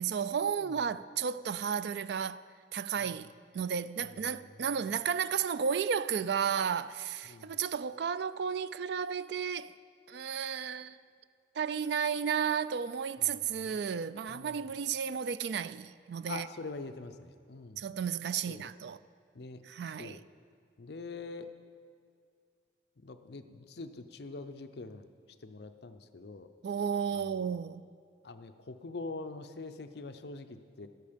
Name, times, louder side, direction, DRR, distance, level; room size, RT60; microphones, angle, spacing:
voice 1, 0.0-2.4 2.7-9.7 10.1-11.0 11.6-16.5 17.8-19.0 19.6-20.2 26.6-27.8, right 7 dB, 60° right, 0.3 m, -33 dB
voice 2, 4.0-4.4 7.3-7.5 13.2-13.3 13.6-13.7 14.3-14.6 16.3-17.8 18.5-18.7 19.3-19.6 20.0-20.2 20.8-21.5 23.0-25.1 25.4-26.5 27.1-27.6 28.2-30.9, left 3 dB, 60° left, 0.6 m, -44 dB
12.5 x 12.5 x 5.1 m
head